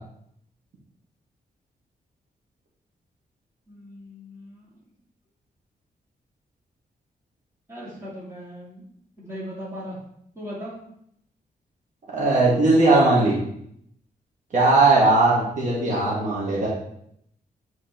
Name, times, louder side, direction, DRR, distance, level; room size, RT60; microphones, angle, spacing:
voice 1, 3.7-4.7 7.7-8.8 9.2-10.0 10.3-10.7, equal, 20° right, -7 dB, 2.6 m, -38 dB
voice 2, 12.1-13.3 14.5-16.7, right 2 dB, 55° right, -6 dB, 2.0 m, -18 dB
8.0 x 4.5 x 4.4 m, 0.72 s
wide cardioid pair, 180°, 16 cm